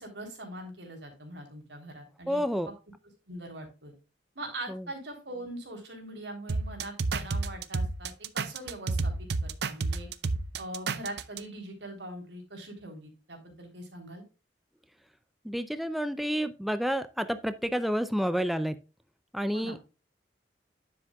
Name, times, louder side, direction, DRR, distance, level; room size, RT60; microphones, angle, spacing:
voice 1, 0.0-2.4 3.3-3.9 4.3-10.1 10.6-14.2 19.5-19.8, right 1 dB, 85° right, 4 dB, 3.4 m, -42 dB
voice 2, 2.3-2.7 4.7-4.8 15.4-18.8 19.3-19.8, equal, ahead, 11 dB, 0.5 m, -29 dB
sound 1, 6.5-11.4, right 3 dB, 65° right, 0.6 m, -30 dB
9.8 x 7.4 x 2.3 m, 0.30 s
head